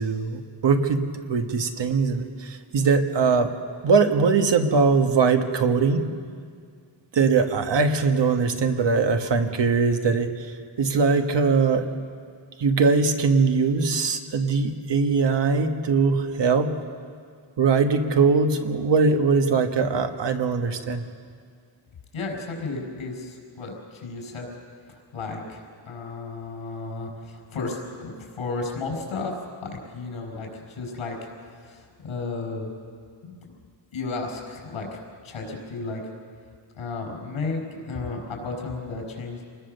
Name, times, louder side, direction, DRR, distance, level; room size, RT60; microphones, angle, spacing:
voice 1, 0.0-3.5 3.8-6.0 7.1-10.3 10.8-11.8 12.6-16.7 17.6-21.0, right 4 dB, 60° right, 5 dB, 1.6 m, -21 dB
voice 2, 22.1-24.5 24.9-31.2 31.5-32.7 33.2-33.5 33.9-35.0 35.2-36.0 36.7-39.4, left 3 dB, 85° left, 2 dB, 5.6 m, -33 dB
27.5 x 20.5 x 6.7 m, 2.1 s
wide cardioid pair, 170°, 48 cm